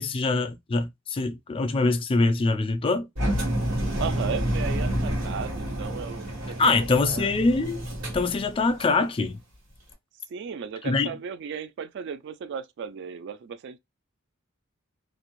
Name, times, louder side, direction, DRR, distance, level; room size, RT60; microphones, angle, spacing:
voice 1, 0.0-3.1 6.6-7.8 8.1-9.4 10.8-11.1, left 3 dB, 25° left, 0.3 m, -24 dB
Engine, 3.2-9.0, equal, 75° right, 1.4 m, -29 dB
voice 2, 4.0-7.3 10.3-13.8, right 6 dB, 55° right, 0.3 m, -35 dB
2.5 x 2.0 x 2.9 m
head